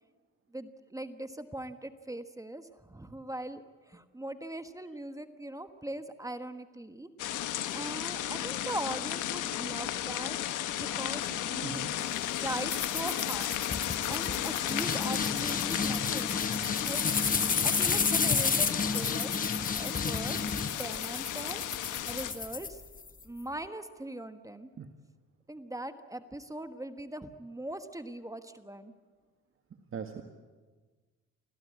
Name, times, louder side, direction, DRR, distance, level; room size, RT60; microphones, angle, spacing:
voice 1, 0.5-7.1 7.7-10.4 10.9-11.8 12.4-13.6 14.1-16.4 16.8-17.1 17.6-19.3 19.7-20.4 20.8-21.6 22.0-22.8 23.2-24.7 25.5-28.9, right 1 dB, 10° right, 9 dB, 1.3 m, -40 dB
sound 1, 7.2-22.3, left 12 dB, 85° left, 1.4 m, -34 dB
voice 2, 11.6-11.9 24.8-24.9 29.9-30.2, right 6 dB, 45° right, 5 dB, 1.7 m, -39 dB
sound 2, 12.7-23.2, left 5 dB, 30° left, 1.2 m, -31 dB
25.0 x 15.5 x 9.5 m, 1.4 s
cardioid pair, 90°, 30 cm